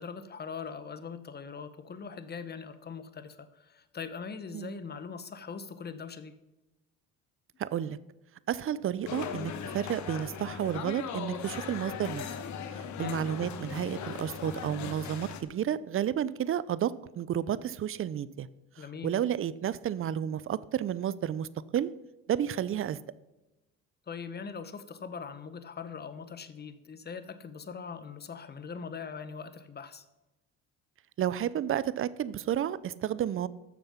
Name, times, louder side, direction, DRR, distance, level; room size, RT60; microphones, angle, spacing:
voice 1, 0.0-6.4 13.0-13.2 18.8-19.1 24.1-30.0, left 6 dB, 30° left, 1.2 m, -41 dB
voice 2, 7.6-8.0 8.5-12.3 12.7-18.5 19.0-21.9 22.3-23.0 31.2-33.5, right 10 dB, 40° right, 0.6 m, -31 dB
sound 1, 9.1-15.4, left 7 dB, 60° left, 1.3 m, -38 dB
13.0 x 7.0 x 5.7 m
supercardioid pair, 85°, 33 cm